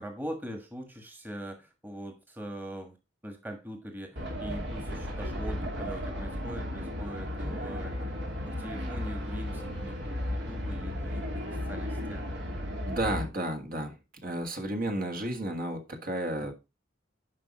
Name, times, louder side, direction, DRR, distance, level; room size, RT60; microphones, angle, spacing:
voice 1, 0.0-3.0 3.2-8.1 8.5-12.3 16.4-16.5, equal, 10° right, 5 dB, 1.5 m, -42 dB
sound 1, 4.2-13.3, left 1 dB, 70° right, 2.8 m, -34 dB
voice 2, 12.9-13.9 14.2-16.5, right 1 dB, 50° right, 4 dB, 1.8 m, -32 dB
10.5 x 5.4 x 4.2 m, 0.26 s
head